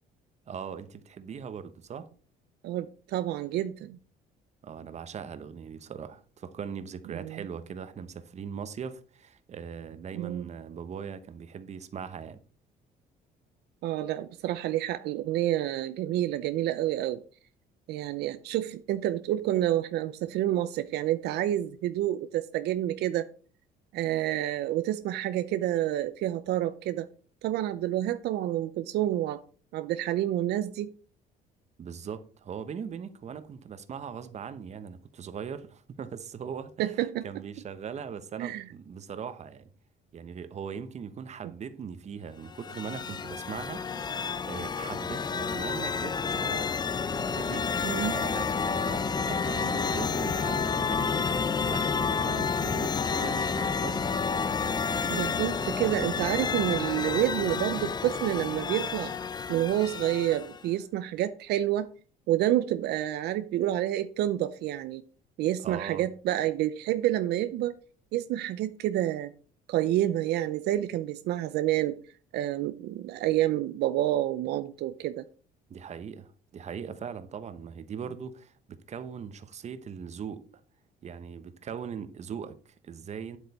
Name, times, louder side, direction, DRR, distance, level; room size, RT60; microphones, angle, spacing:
voice 1, 0.5-2.1 4.6-12.4 31.8-39.7 40.1-43.8 44.4-46.7 47.2-47.7 48.1-54.0 65.6-66.1 75.7-80.4 81.0-83.4, right 7 dB, 40° right, 1.0 m, -40 dB
voice 2, 2.6-4.0 7.1-7.4 10.1-10.5 13.8-17.2 17.9-23.3 23.9-27.1 27.4-29.4 29.7-30.9 36.8-37.4 38.4-38.7 47.8-48.2 55.1-59.1 59.5-61.9 62.3-65.0 65.4-67.7 68.1-69.3 69.7-72.0 72.3-75.2, right 13 dB, 75° right, 0.6 m, -28 dB
sound 1, 42.5-60.6, left 5 dB, 25° left, 0.6 m, -30 dB
9.2 x 8.0 x 4.2 m
cardioid pair, 110°, 17 cm